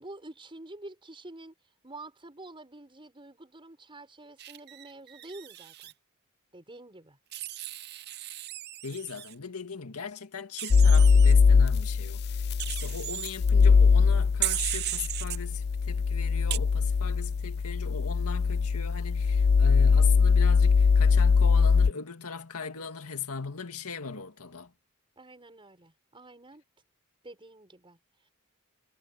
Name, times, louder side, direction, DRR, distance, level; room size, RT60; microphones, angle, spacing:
voice 1, 0.0-1.5 1.8-5.9 6.5-7.2 25.2-26.6 27.2-28.0, right 2 dB, 25° right, 6.5 m, -47 dB
Wild animals, 4.4-5.9 7.3-9.3 10.6-11.3 12.6-13.3 14.4-15.4 16.5-16.6, right 14 dB, 45° right, 0.6 m, -35 dB
voice 2, 8.8-24.7, left 5 dB, 80° left, 2.0 m, -39 dB
sound 1, 10.7-21.9, left 5 dB, 45° left, 0.4 m, -22 dB
head